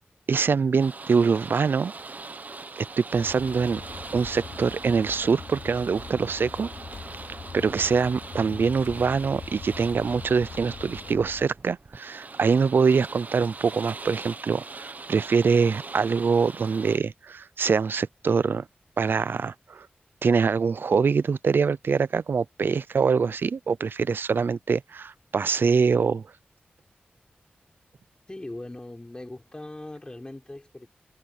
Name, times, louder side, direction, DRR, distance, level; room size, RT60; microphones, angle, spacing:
voice 1, 0.3-1.9 3.0-3.8 4.1-6.7 7.5-18.6 19.0-19.9 20.2-26.2, right 5 dB, 75° right, 0.5 m, -24 dB
sound 1, 0.8-17.0, right 3 dB, 50° right, 1.1 m, -41 dB
sound 2, 3.1-11.5, left 5 dB, 85° left, 3.7 m, -42 dB
voice 2, 28.3-30.9, left 1 dB, 25° left, 4.2 m, -40 dB
cardioid pair, 60°, 4 cm